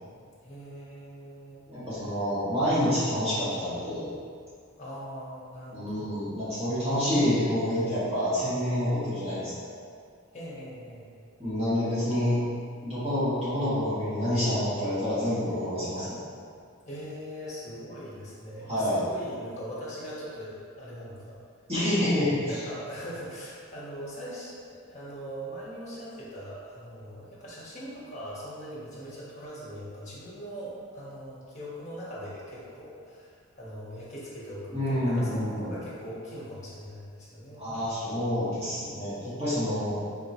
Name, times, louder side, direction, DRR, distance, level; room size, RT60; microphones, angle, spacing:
voice 1, 0.4-1.6 4.8-6.2 10.3-11.1 15.9-16.1 16.8-21.4 22.3-37.7 40.0-40.1, equal, 35° left, -7 dB, 1.0 m, -41 dB
voice 2, 1.7-4.1 5.7-9.7 11.4-12.4 12.8-16.2 18.7-19.0 21.7-22.6 34.7-35.7 37.5-40.0, left 1 dB, 30° right, -14 dB, 1.4 m, -28 dB
3.8 x 3.6 x 2.9 m, 2.2 s
head